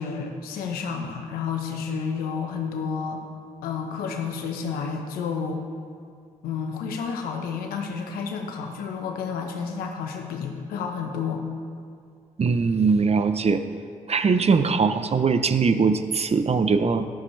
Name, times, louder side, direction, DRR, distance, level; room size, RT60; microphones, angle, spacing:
voice 1, 0.0-3.2 3.6-5.6 6.4-11.4, left 6 dB, 90° left, 3 dB, 1.1 m, -30 dB
voice 2, 12.4-13.6 14.1-17.1, right 5 dB, 45° right, 10 dB, 0.8 m, -21 dB
12.5 x 12.5 x 3.3 m, 2.3 s
supercardioid pair, 50°, 15 cm